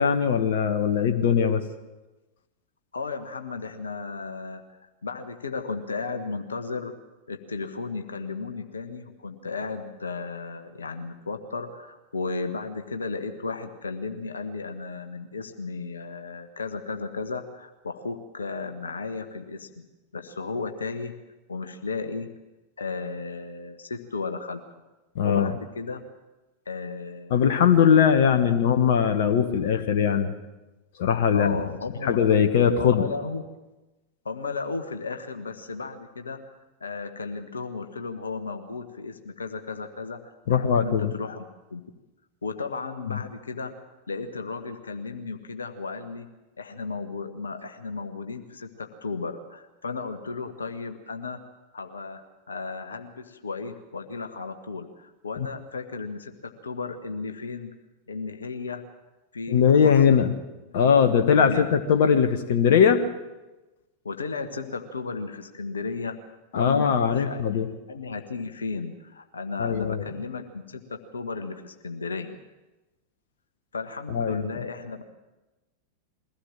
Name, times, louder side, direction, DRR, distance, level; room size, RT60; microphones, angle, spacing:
voice 1, 0.0-1.6 25.1-25.5 27.3-30.3 31.0-31.7 32.0-33.0 40.5-41.1 43.1-43.2 55.4-55.5 59.5-60.3 60.7-63.0 66.5-67.7 69.6-70.0 74.1-74.5, left 7 dB, 55° left, 8 dB, 1.3 m, -20 dB
voice 2, 2.9-6.9 7.3-19.9 20.1-21.1 21.5-22.3 22.8-24.6 25.2-26.0 26.6-27.8 28.3-28.5 31.3-32.3 32.8-33.4 34.2-36.5 36.8-41.8 42.4-43.7 44.1-46.3 46.6-51.4 51.7-57.7 58.1-58.8 59.3-60.2 61.4-61.7 64.0-66.2 66.5-67.6 67.9-72.4 73.7-75.0, left 4 dB, 75° left, 7 dB, 1.3 m, -34 dB
22.0 x 16.5 x 7.6 m, 1.1 s
figure-of-eight pair, 90°, 0 cm